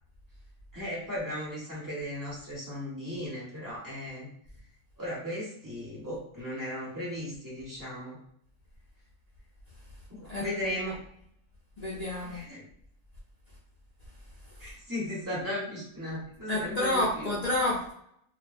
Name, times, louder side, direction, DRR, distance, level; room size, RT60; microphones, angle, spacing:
voice 1, 0.7-4.3 5.0-8.2 10.1-11.0 12.2-12.6 14.6-17.4, equal, 15° right, -8 dB, 1.0 m, -36 dB
voice 2, 10.3-10.9 11.8-12.4 16.5-17.9, left 1 dB, 70° left, -6 dB, 0.4 m, -30 dB
2.3 x 2.2 x 2.5 m, 0.72 s
omnidirectional pair, 1.4 m